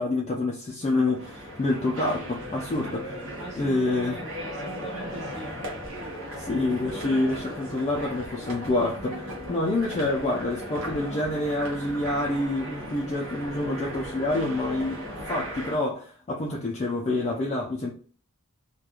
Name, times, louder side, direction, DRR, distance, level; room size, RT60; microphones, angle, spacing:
voice 1, 0.0-3.2 3.5-4.2 6.4-17.9, left 2 dB, 30° left, 0.3 m, -27 dB
sound 1, 1.1-15.8, equal, 60° right, 0.8 m, -37 dB
voice 2, 3.4-5.5, right 1 dB, 10° right, 0.7 m, -41 dB
2.3 x 2.2 x 2.8 m
head